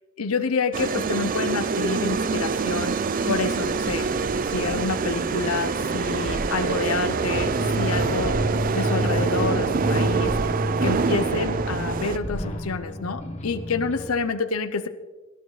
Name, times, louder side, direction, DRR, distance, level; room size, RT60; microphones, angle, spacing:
voice 1, 0.2-3.0 3.3-8.5 8.7-10.3 10.8-14.9, left 4 dB, 80° left, 11 dB, 0.7 m, -28 dB
sound 1, 0.7-12.2, right 4 dB, 40° right, 0.4 m, -25 dB
sound 2, 4.6-14.2, equal, 30° left, 1.4 m, -31 dB
18.0 x 14.0 x 3.2 m, 1.3 s
head